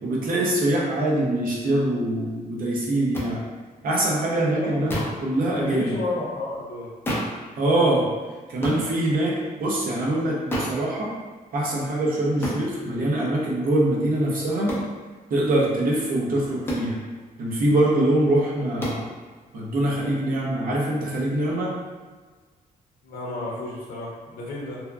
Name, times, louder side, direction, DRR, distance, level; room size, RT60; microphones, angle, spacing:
voice 1, 0.0-3.4 3.8-5.0 5.2-6.0 7.6-8.1 8.5-11.1 11.5-14.7 15.3-17.0 17.4-19.1 19.5-21.7, right 1 dB, 70° right, -3 dB, 0.7 m, -23 dB
sound 1, 3.1-3.3 4.9-5.2 7.1-7.4 8.6-8.9 10.5-10.8 12.4-12.7 14.7-14.9 16.7-16.9 18.8-19.1, equal, 15° left, 0.5 m, -28 dB
voice 2, 4.5-4.8 5.5-6.9 23.0-24.8, left 2 dB, 75° left, -4 dB, 0.6 m, -31 dB
2.7 x 2.3 x 2.3 m, 1.4 s
wide cardioid pair, 145°, 15 cm